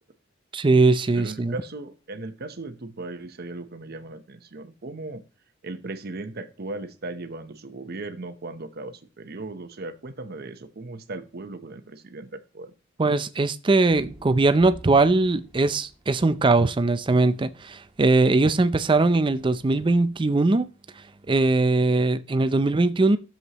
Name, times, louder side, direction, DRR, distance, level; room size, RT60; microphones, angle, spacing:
voice 1, 0.5-1.5 13.0-20.7 21.3-23.2, right 3 dB, 25° right, 0.5 m, -20 dB
voice 2, 1.1-5.2 5.6-12.7, right 2 dB, 50° right, 0.8 m, -37 dB
sound 1, 13.9-20.0, equal, ahead, 2.4 m, -51 dB
11.0 x 7.2 x 3.0 m
head